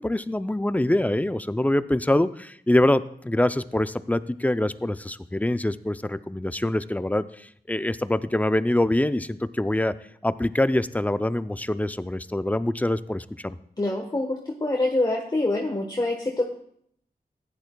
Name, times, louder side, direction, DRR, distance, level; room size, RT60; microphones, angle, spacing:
voice 1, 0.0-9.9 10.2-13.6, left 1 dB, 10° left, 13 dB, 0.4 m, -24 dB
voice 2, 13.8-16.5, left 2 dB, 25° left, 0 dB, 1.2 m, -25 dB
15.0 x 10.5 x 2.2 m, 0.67 s
wide cardioid pair, 70°, 16 cm